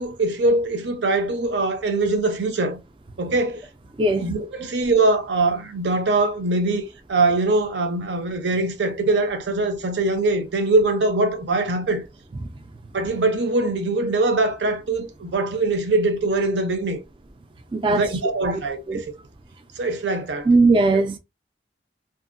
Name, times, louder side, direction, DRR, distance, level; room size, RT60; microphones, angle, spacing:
voice 1, 0.0-2.8 3.2-3.6 4.2-6.8 7.1-12.0 12.9-17.0 17.9-19.0 19.8-20.5, right 2 dB, 80° right, 0.7 m, -22 dB
voice 2, 17.7-18.0 18.5-18.6 18.9-19.0 20.5-21.2, right 3 dB, 30° right, 0.3 m, -18 dB
2.7 x 2.6 x 2.5 m
head